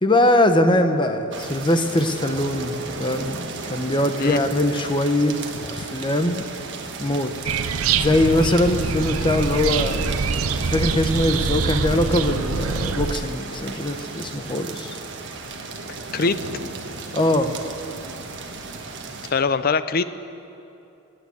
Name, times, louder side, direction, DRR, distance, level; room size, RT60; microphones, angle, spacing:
voice 1, 0.0-5.4 5.7-6.4 7.0-7.3 8.0-10.1 10.6-15.0 17.1-17.5, left 1 dB, 25° left, 8 dB, 0.9 m, -21 dB
sound 1, 1.3-19.3, right 3 dB, 60° right, 1.4 m, -34 dB
sound 2, 7.5-13.2, right 5 dB, 90° right, 0.6 m, -25 dB
voice 2, 16.1-16.5 19.3-20.0, left 4 dB, 45° left, 13 dB, 0.5 m, -22 dB
19.0 x 8.8 x 8.5 m, 2.8 s
head